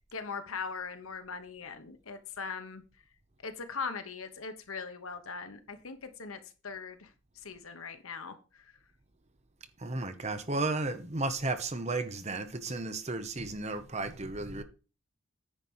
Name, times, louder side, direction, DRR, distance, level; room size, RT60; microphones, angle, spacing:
voice 1, 0.1-2.8 3.4-8.7, left 5 dB, 75° left, 1.2 m, -40 dB
voice 2, 9.8-14.6, right 2 dB, 30° right, 0.9 m, -33 dB
9.8 x 4.6 x 5.5 m
head